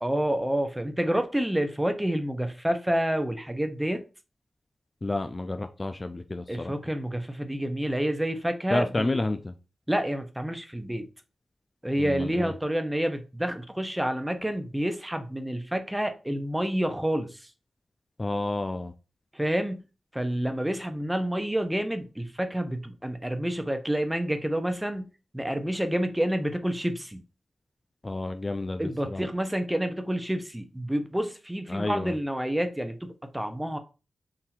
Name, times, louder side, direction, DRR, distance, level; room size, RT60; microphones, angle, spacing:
voice 1, 0.0-4.1 6.5-9.2 9.9-11.1 11.8-17.5 19.3-19.9 20.1-27.2 28.8-33.8, right 1 dB, 10° right, 0.7 m, -28 dB
voice 2, 5.0-6.7 8.7-9.5 12.0-12.5 18.2-18.9 28.0-29.2 31.7-32.2, left 2 dB, 30° left, 0.4 m, -30 dB
3.9 x 2.7 x 4.2 m
wide cardioid pair, 80°, 0 cm